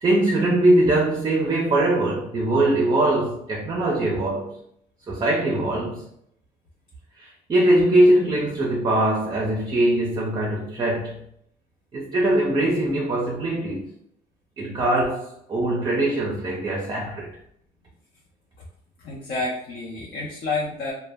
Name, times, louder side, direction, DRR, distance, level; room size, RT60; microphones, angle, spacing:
voice 1, 0.0-4.6 5.1-6.0 7.2-11.2 11.9-13.9 14.6-17.4, right 1 dB, 25° right, -1 dB, 0.5 m, -22 dB
voice 2, 19.0-20.9, left 3 dB, 60° left, -3 dB, 0.6 m, -29 dB
2.1 x 2.0 x 3.4 m, 0.70 s
cardioid pair, 110°, 17 cm